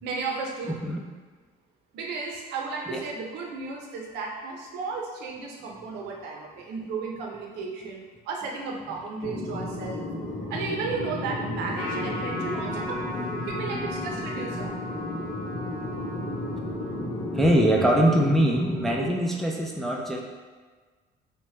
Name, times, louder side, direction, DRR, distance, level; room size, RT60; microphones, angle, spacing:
voice 1, 0.0-0.7 1.9-10.1 10.5-13.0 13.4-14.7, right 4 dB, 80° right, 0 dB, 0.6 m, -34 dB
sound 1, 9.2-19.1, left 1 dB, 55° left, 0.7 m, -33 dB
Trumpet, 11.7-18.4, left 1 dB, 85° left, 0.8 m, -38 dB
voice 2, 17.3-20.2, right 1 dB, ahead, -1 dB, 0.3 m, -22 dB
2.7 x 2.2 x 3.1 m, 1.4 s
cardioid pair, 110°, 17 cm